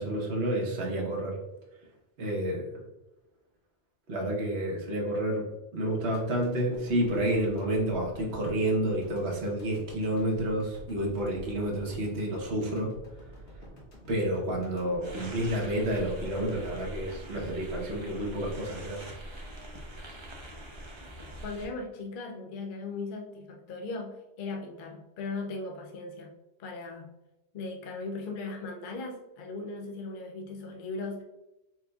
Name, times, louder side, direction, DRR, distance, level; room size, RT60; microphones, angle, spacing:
voice 1, 0.0-1.4 2.2-2.8 4.1-12.9 14.1-19.0, right 1 dB, 70° right, -2 dB, 1.2 m, -30 dB
sound 1, 6.1-18.4 18.7-18.8, right 1 dB, 90° left, 1.5 m, -49 dB
sound 2, 15.0-21.7, right 1 dB, 30° right, 0.7 m, -43 dB
voice 2, 21.4-26.3 26.6-27.1 27.5-31.2, left 3 dB, 60° left, 3 dB, 0.6 m, -38 dB
4.6 x 3.9 x 2.2 m, 0.99 s
omnidirectional pair, 1.1 m